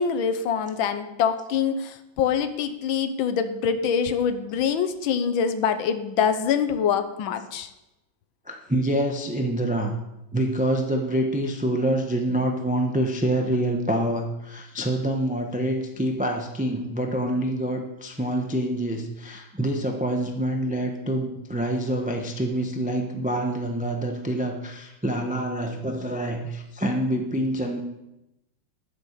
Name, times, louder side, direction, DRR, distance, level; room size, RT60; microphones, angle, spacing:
voice 1, 0.0-7.7, left 7 dB, 85° left, 9 dB, 1.6 m, -25 dB
voice 2, 8.5-9.9 10.3-27.8, right 1 dB, 5° right, 3 dB, 0.6 m, -26 dB
10.0 x 9.8 x 6.7 m, 0.92 s
omnidirectional pair, 2.1 m